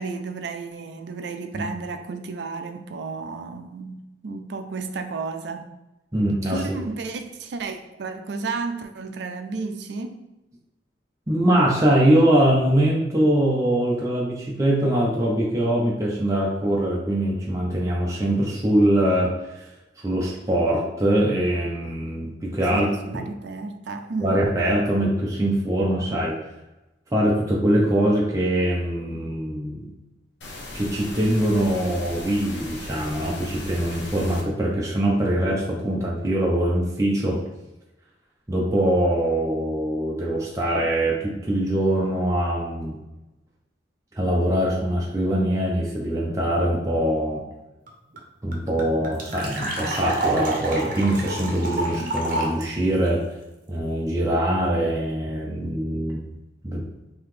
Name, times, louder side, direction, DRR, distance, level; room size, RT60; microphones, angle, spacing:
voice 1, 0.0-5.7 6.5-10.2 22.7-24.4, right 4 dB, 70° right, 7 dB, 0.4 m, -32 dB
voice 2, 6.1-6.6 11.3-19.7 20.0-22.9 24.2-26.4 27.1-29.9 30.7-37.4 38.5-43.0 44.2-47.4 48.4-53.2 53.7-56.3 56.6-56.8, right 1 dB, 20° right, -4 dB, 0.5 m, -23 dB
sound 1, 30.4-34.4, left 2 dB, 75° left, 0.8 m, -37 dB
sound 2, 47.9-48.0 48.1-48.2 48.5-52.6, right 2 dB, 50° right, 0.8 m, -28 dB
3.8 x 2.8 x 3.2 m, 0.99 s
head